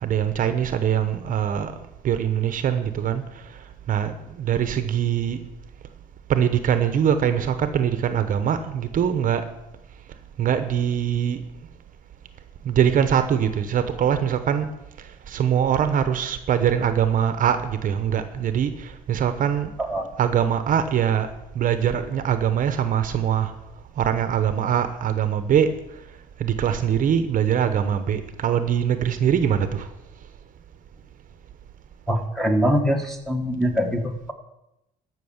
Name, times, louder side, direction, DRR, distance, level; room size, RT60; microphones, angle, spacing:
voice 1, 0.0-1.7 2.0-3.6 3.9-5.4 6.3-9.5 10.4-11.5 12.6-14.7 15.0-19.7 20.2-21.3 21.5-23.5 24.0-25.7 26.4-29.9, right 9 dB, 50° right, 10 dB, 0.9 m, -23 dB
voice 2, 32.1-34.3, equal, ahead, 4 dB, 1.6 m, -23 dB
13.0 x 6.1 x 7.2 m, 0.88 s
cardioid pair, 110°, 17 cm